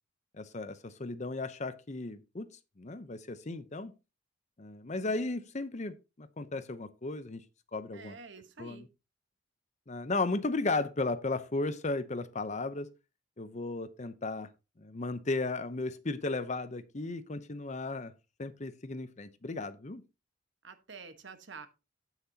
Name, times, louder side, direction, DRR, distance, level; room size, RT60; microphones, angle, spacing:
voice 1, 0.4-3.9 4.6-7.4 7.7-8.1 8.6-8.9 9.9-12.9 13.4-14.5 14.8-18.1 18.4-20.0, left 3 dB, 35° left, 0.7 m, -35 dB
voice 2, 7.9-8.9 20.6-21.7, right 4 dB, 65° right, 1.3 m, -48 dB
15.0 x 6.0 x 2.8 m
head